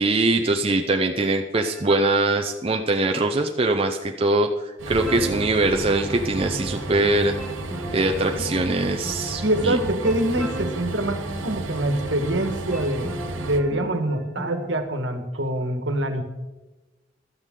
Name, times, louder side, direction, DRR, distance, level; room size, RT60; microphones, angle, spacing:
voice 1, 0.0-7.3 7.9-9.8, right 2 dB, 30° right, 4 dB, 0.6 m, -22 dB
sound 1, 1.5-2.4 5.0-14.8, right 2 dB, 5° left, 1.8 m, -37 dB
Train, 4.8-13.6, right 2 dB, 90° right, 1.1 m, -33 dB
voice 2, 9.4-13.1 13.4-16.2, right 1 dB, 70° right, 7 dB, 1.5 m, -25 dB
15.5 x 12.0 x 3.8 m, 1.1 s
head